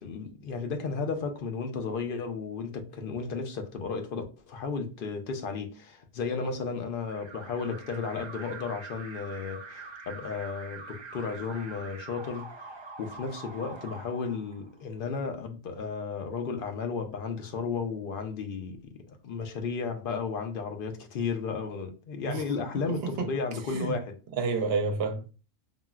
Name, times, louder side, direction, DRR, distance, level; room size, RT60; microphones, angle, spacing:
voice 1, 0.0-18.8 19.1-24.2, left 5 dB, 60° left, 0.7 m, -34 dB
Alarm, 7.0-14.9, right 4 dB, 40° right, 0.4 m, -44 dB
voice 2, 24.4-25.3, right 4 dB, 65° right, 0.8 m, -29 dB
3.8 x 2.0 x 2.3 m
omnidirectional pair, 1.2 m